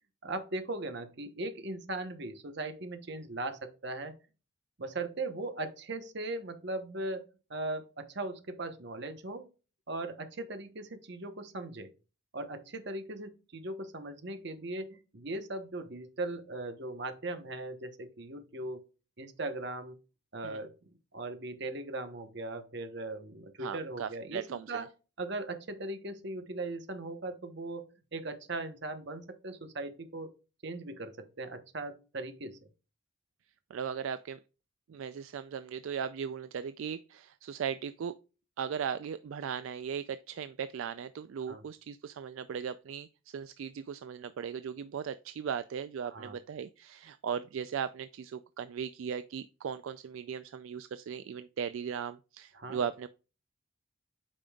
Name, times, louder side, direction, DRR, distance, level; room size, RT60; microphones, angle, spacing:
voice 1, 0.2-4.1 4.8-9.5 9.9-11.9 12.3-18.8 19.2-20.0 20.3-20.8 21.1-24.9 25.2-27.8 28.1-30.3 30.6-32.7 41.5-41.6 46.0-46.4 52.5-52.8, right 2 dB, 55° right, 1.0 m, -39 dB
voice 2, 23.6-24.9 33.7-34.4 34.9-38.1 38.6-53.1, right 7 dB, 75° right, 0.3 m, -38 dB
8.5 x 5.3 x 2.3 m
head